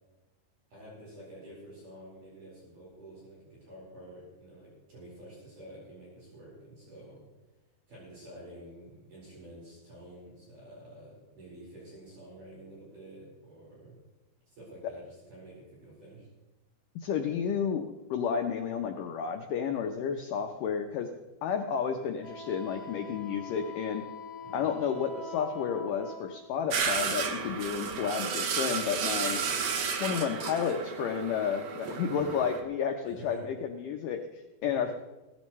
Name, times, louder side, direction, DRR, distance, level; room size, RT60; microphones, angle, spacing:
voice 1, 0.7-7.2 7.9-14.0 14.5-16.3 24.4-24.6 32.1-32.4 33.0-33.5 34.6-34.9, right 1 dB, 50° right, -6 dB, 6.0 m, -49 dB
voice 2, 17.0-21.1 21.4-24.0 24.5-29.4 29.9-34.9, left 7 dB, 90° left, 4 dB, 1.9 m, -31 dB
Wind instrument woodwind instrument, 22.2-26.4, left 2 dB, 60° left, 5.1 m, -43 dB
sound 1, 26.7-32.6, right 6 dB, 70° right, 1.8 m, -32 dB
17.0 x 14.0 x 3.1 m, 1.1 s
omnidirectional pair, 4.9 m